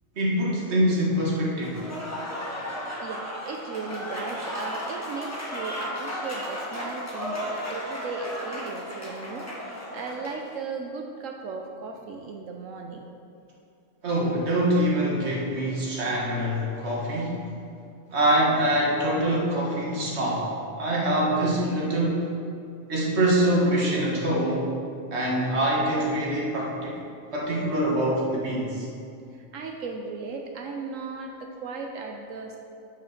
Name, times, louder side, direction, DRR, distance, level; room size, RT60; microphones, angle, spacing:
voice 1, 0.2-1.8 14.0-17.5 18.1-20.5 20.8-22.3 22.9-24.7 25.1-27.0 27.3-28.9, right 1 dB, 50° right, -4 dB, 1.8 m, -24 dB
Applause / Crowd, 1.6-10.4, equal, 10° left, 1.3 m, -34 dB
voice 2, 3.0-13.1 29.3-32.6, right 4 dB, 70° right, 2 dB, 1.0 m, -36 dB
7.7 x 6.3 x 5.7 m, 2.5 s
omnidirectional pair, 1.4 m